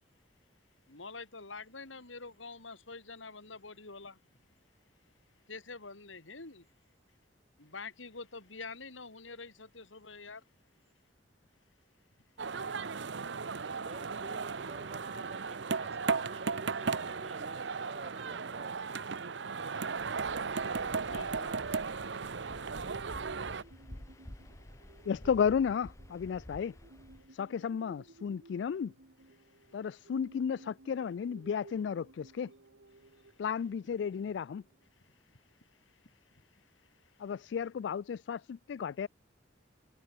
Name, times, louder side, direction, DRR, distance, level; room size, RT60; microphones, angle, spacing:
voice 1, 0.9-4.2 5.5-6.6 7.6-10.4 21.1-21.5, left 4 dB, 85° left, 3.1 m, -46 dB
sound 1, 12.4-23.6, right 5 dB, 65° right, 0.8 m, -36 dB
voice 2, 13.8-18.9, right 3 dB, 35° right, 1.2 m, -50 dB
Waves surf, 20.0-27.3, left 1 dB, 15° left, 0.9 m, -51 dB
sound 2, 22.6-34.9, right 2 dB, 90° right, 1.7 m, -59 dB
voice 3, 25.1-26.7 27.3-28.9 29.7-32.5 33.4-34.6 37.2-39.1, left 7 dB, 65° left, 0.3 m, -33 dB
head